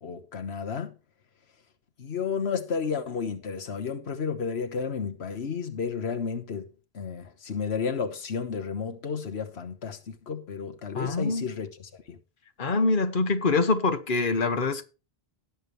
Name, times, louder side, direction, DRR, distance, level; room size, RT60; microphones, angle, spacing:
voice 1, 0.0-0.9 2.0-6.7 6.9-12.2, left 6 dB, 85° left, 1.4 m, -32 dB
voice 2, 10.9-11.5 12.6-14.8, left 3 dB, 55° left, 1.5 m, -25 dB
18.0 x 7.4 x 3.2 m
omnidirectional pair, 1.0 m